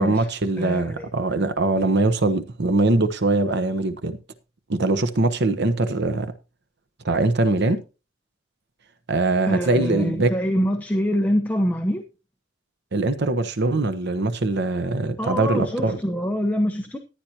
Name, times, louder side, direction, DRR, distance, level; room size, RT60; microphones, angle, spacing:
voice 1, 0.0-4.2 4.7-6.3 7.0-7.8 9.1-10.3 12.9-16.0, right 2 dB, 60° right, 1.1 m, -22 dB
voice 2, 0.6-1.1 9.5-12.0 15.2-17.0, equal, 10° left, 1.1 m, -25 dB
14.5 x 10.5 x 2.9 m
head